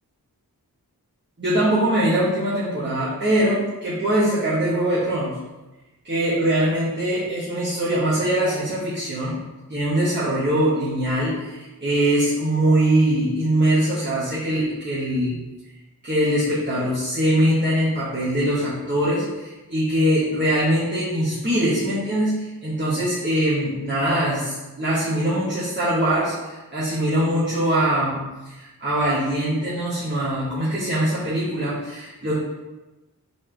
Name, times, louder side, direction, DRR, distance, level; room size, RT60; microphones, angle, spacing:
voice 1, 1.4-5.4 6.0-9.4 9.7-15.3 16.0-28.2 28.4-32.3, right 1 dB, 30° right, -10 dB, 1.2 m, -22 dB
4.1 x 3.4 x 3.3 m, 1.1 s
wide cardioid pair, 55°, 36 cm